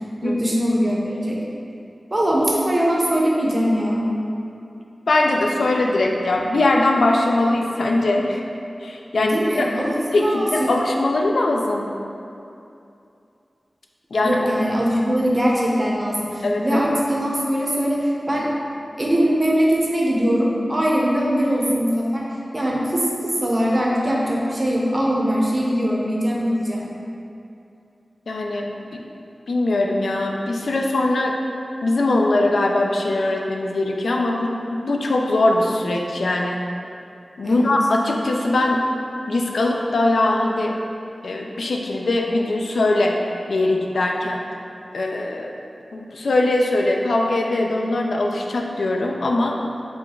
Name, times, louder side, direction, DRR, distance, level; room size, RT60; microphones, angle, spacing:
voice 1, 0.2-1.4 2.1-4.0 9.2-10.7 14.2-18.5 19.0-22.2 22.5-26.9 37.4-37.7, equal, 30° right, -3 dB, 0.6 m, -21 dB
voice 2, 5.1-8.4 8.8-9.7 10.1-11.9 14.1-14.5 16.4-16.8 28.3-29.0 29.5-31.3 31.8-36.6 37.4-38.8 39.3-40.7 41.2-43.1 43.5-44.4 44.9-45.5 45.9-49.6, left 2 dB, 85° left, 1 dB, 0.3 m, -21 dB
4.8 x 2.2 x 3.7 m, 2.6 s
wide cardioid pair, 85°, 0 cm